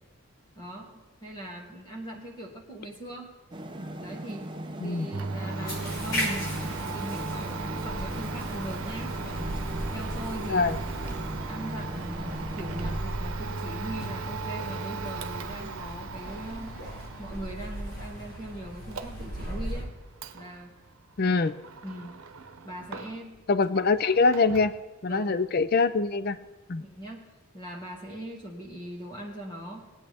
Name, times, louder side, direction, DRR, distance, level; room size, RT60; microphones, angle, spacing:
voice 1, 0.6-0.9 1.2-3.3 4.0-4.5 4.8-9.5 9.9-10.7 11.4-16.8 17.2-19.9 20.3-20.7 21.2-21.4 21.8-22.2 22.6-23.4 25.1-25.4 26.8-29.9, right 1 dB, 20° left, -1 dB, 2.2 m, -40 dB
sound 1, 3.5-13.0, right 1 dB, 20° right, 0.7 m, -38 dB
Domestic sounds home sounds, 5.1-23.4 23.7-24.8, right 4 dB, 90° right, 0.8 m, -38 dB
sound 2, 5.7-19.8, equal, 70° left, 4.6 m, -37 dB
voice 2, 21.2-21.5 23.5-24.7 25.0-26.4 26.7-26.8, left 4 dB, 45° left, 13 dB, 0.5 m, -24 dB
21.0 x 8.8 x 3.5 m, 1.1 s
head